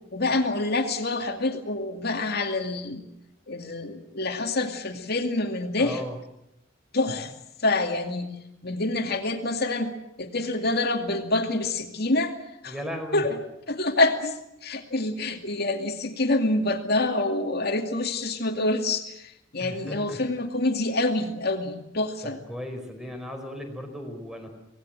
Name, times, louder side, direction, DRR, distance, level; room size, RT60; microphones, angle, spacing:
voice 1, 0.1-3.0 3.5-6.0 6.9-7.3 7.6-8.3 8.6-9.9 10.2-12.3 12.6-12.8 13.1-13.4 13.7-22.4, left 2 dB, 55° left, 5 dB, 2.4 m, -26 dB
voice 2, 5.8-6.2 12.7-13.2 19.6-20.2 22.2-24.5, equal, 5° right, 5 dB, 4.8 m, -36 dB
25.5 x 19.0 x 9.0 m, 0.83 s
head